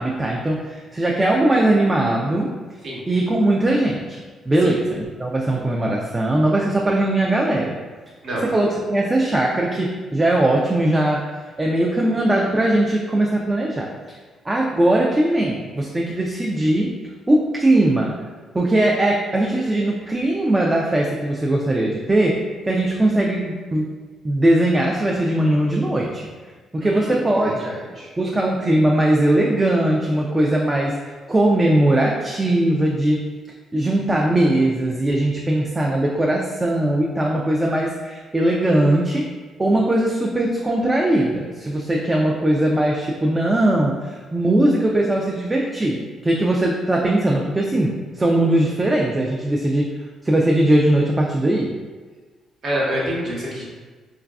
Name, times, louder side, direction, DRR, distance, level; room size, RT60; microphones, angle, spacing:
voice 1, 0.0-2.5 3.1-4.2 4.5-7.8 8.4-11.3 11.6-13.9 14.5-16.9 17.3-18.2 18.5-23.9 24.2-26.2 26.7-27.6 28.2-33.3 33.7-39.3 39.6-49.9 50.2-51.7, right 1 dB, 20° right, -2 dB, 0.3 m, -20 dB
voice 2, 26.8-28.1 52.6-53.6, equal, 60° right, -5 dB, 1.0 m, -27 dB
3.9 x 2.3 x 2.3 m, 1.4 s
cardioid pair, 90°, 0 cm